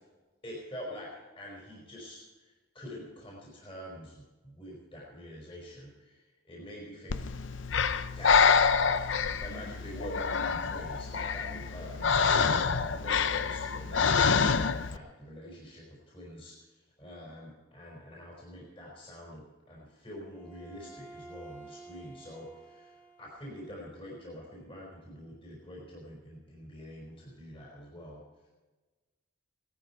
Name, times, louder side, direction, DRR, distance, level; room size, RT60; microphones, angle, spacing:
voice 1, 0.4-7.3 8.1-9.0 9.4-28.2, equal, 25° left, -3 dB, 4.8 m, -46 dB
Breathing, 7.1-15.0, left 5 dB, 65° left, 0.6 m, -27 dB
Bowed string instrument, 20.3-23.7, right 3 dB, 5° left, 2.0 m, -51 dB
18.0 x 13.5 x 4.5 m, 1.2 s
head